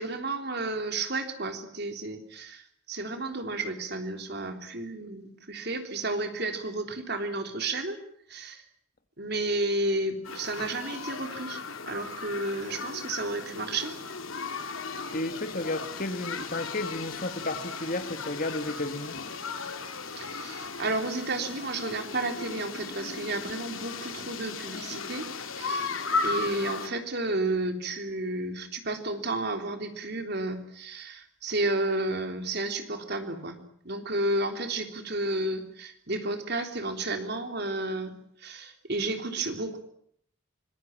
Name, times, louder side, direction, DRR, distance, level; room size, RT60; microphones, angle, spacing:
voice 1, 0.0-2.6 2.9-8.0 8.3-8.6 9.2-13.9 20.2-25.3 25.6-25.9 26.2-33.6 33.9-38.1 38.4-39.8, right 2 dB, 55° right, 6 dB, 3.5 m, -32 dB
sound 1, 10.2-26.9, left 4 dB, 80° left, 2.9 m, -36 dB
voice 2, 15.1-19.2, left 2 dB, 45° left, 9 dB, 2.2 m, -32 dB
25.5 x 21.5 x 8.9 m, 0.66 s
head